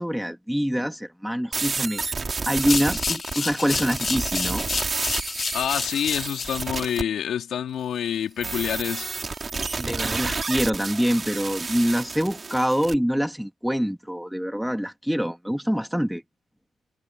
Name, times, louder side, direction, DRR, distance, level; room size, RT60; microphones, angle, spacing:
voice 1, 0.0-2.0 2.5-4.6 9.8-16.2, equal, ahead, 2.9 m, -25 dB
sound 1, 1.5-7.0 8.4-13.0, right 4 dB, 30° right, 3.2 m, -30 dB
sound 2, 2.5-6.6, left 5 dB, 35° left, 1.5 m, -30 dB
voice 2, 5.5-9.1, left 9 dB, 65° left, 3.2 m, -27 dB
cardioid pair, 90°, 0 cm